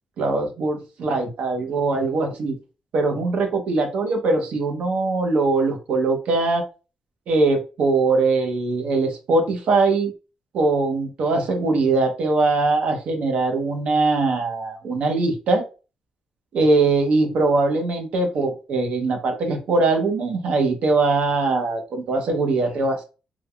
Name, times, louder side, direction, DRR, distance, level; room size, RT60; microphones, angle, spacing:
voice 1, 0.2-2.5 2.9-6.6 7.3-10.1 10.5-15.6 16.5-23.0, right 3 dB, 70° right, 4 dB, 0.7 m, -21 dB
3.3 x 2.1 x 2.2 m, 0.33 s
cardioid pair, 120°, 2 cm